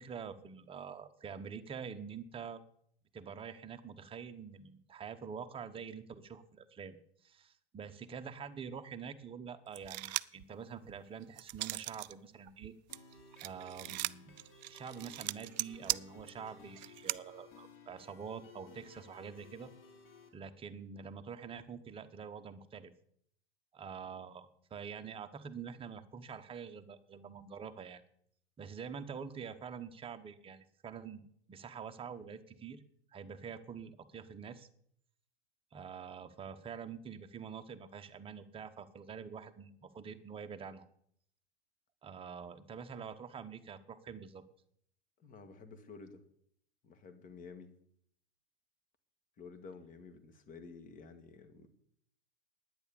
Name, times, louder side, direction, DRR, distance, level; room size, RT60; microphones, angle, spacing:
voice 1, 0.0-2.6 3.1-7.0 7.2-12.7 13.4-14.3 14.7-19.7 20.3-22.9 23.7-28.0 28.6-31.2 31.5-32.8 33.1-34.7 35.7-40.9 42.0-44.4, right 6 dB, 15° right, 8 dB, 1.0 m, -46 dB
sound 1, 9.8-10.4 10.9-12.1 12.5-17.2, right 19 dB, 45° right, 0.4 m, -38 dB
sound 2, 12.9-20.3, left 4 dB, 45° left, 3.4 m, -57 dB
voice 2, 45.2-46.2 46.8-47.7 49.4-51.7, left 4 dB, 25° left, 10 dB, 1.7 m, -51 dB
10.5 x 9.7 x 7.0 m, 0.67 s
hypercardioid pair, 105°, 32 cm